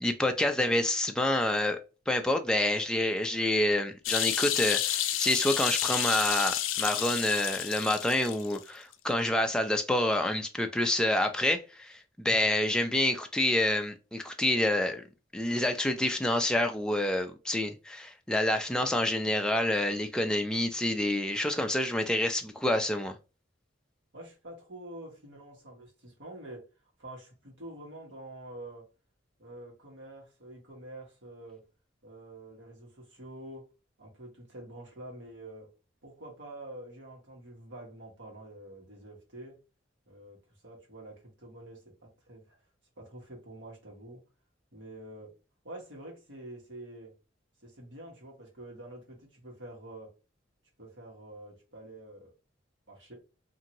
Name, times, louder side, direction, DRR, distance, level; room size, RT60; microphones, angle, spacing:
voice 1, 0.0-1.8 2.1-15.0 15.3-23.1, left 1 dB, 5° left, 0.3 m, -28 dB
sound 1, 4.0-8.6 8.9-9.0, left 12 dB, 90° left, 0.4 m, -30 dB
voice 2, 24.1-26.6 27.0-28.9 29.4-31.6 32.0-33.7 34.0-35.7 36.0-39.6 40.1-40.4 40.6-41.8 42.3-42.6 43.0-44.2 44.7-45.3 45.6-47.1 47.6-50.1 50.8-52.3 52.9-53.1, right 1 dB, 70° right, 1.3 m, -47 dB
2.8 x 2.5 x 2.8 m
head